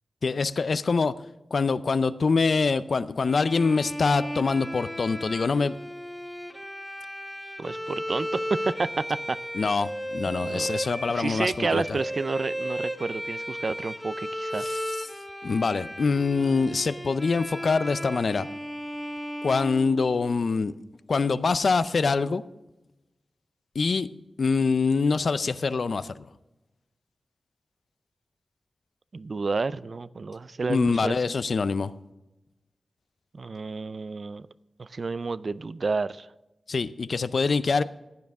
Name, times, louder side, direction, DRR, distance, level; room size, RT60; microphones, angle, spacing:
voice 1, 0.2-1.1 1.5-5.7 9.5-11.8 14.6-15.1 15.4-18.5 19.4-20.8 21.1-22.4 23.7-24.1 24.4-26.3 30.7-31.9 36.7-37.8, left 4 dB, 65° left, 14 dB, 0.5 m, -24 dB
Bowed string instrument, 3.3-20.5, equal, ahead, 1.3 m, -35 dB
voice 2, 7.6-9.4 10.4-10.7 11.1-14.8 29.1-31.1 33.3-34.4 34.8-36.3, right 4 dB, 55° right, 16 dB, 0.4 m, -30 dB
15.5 x 9.5 x 3.6 m, 1.0 s
wide cardioid pair, 85°, 0 cm